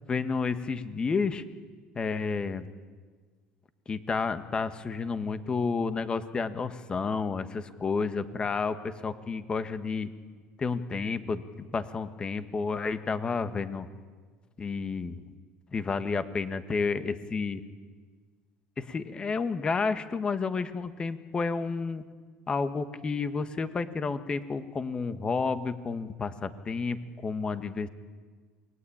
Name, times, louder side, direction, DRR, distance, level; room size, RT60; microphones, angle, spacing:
voice 1, 0.1-1.4 1.9-2.7 3.9-10.1 10.6-11.4 11.7-13.9 14.6-15.2 15.7-17.6 18.8-22.0 22.5-27.9, left 4 dB, 25° left, 10 dB, 1.5 m, -31 dB
28.0 x 21.5 x 8.8 m, 1.5 s
supercardioid pair, 110°, 4 cm